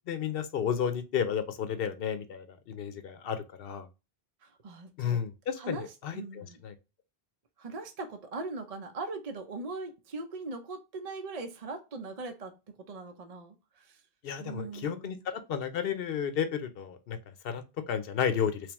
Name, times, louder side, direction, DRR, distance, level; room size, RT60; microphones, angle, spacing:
voice 1, 0.1-3.9 5.0-6.7 14.2-17.2 17.4-18.6, left 8 dB, 70° left, 0.8 m, -32 dB
voice 2, 4.4-5.2 5.6-6.6 7.6-14.0 14.4-15.1, right 3 dB, 45° right, 0.6 m, -40 dB
3.5 x 3.2 x 2.9 m
omnidirectional pair, 1.0 m